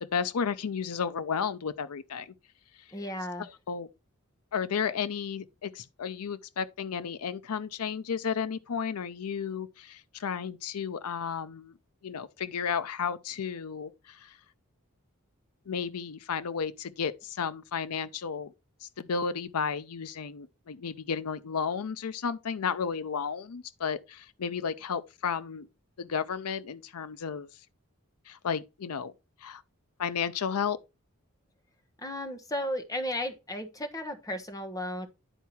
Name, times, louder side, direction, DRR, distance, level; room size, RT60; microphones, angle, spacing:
voice 1, 0.0-2.3 3.4-3.9 4.5-11.7 12.0-14.4 15.7-18.5 18.8-25.7 26.0-27.5 28.3-29.1 29.4-29.6 30.0-30.8, left 6 dB, 90° left, 0.5 m, -33 dB
voice 2, 2.9-3.5 32.0-35.1, left 1 dB, 15° left, 1.1 m, -34 dB
10.0 x 4.6 x 4.3 m
head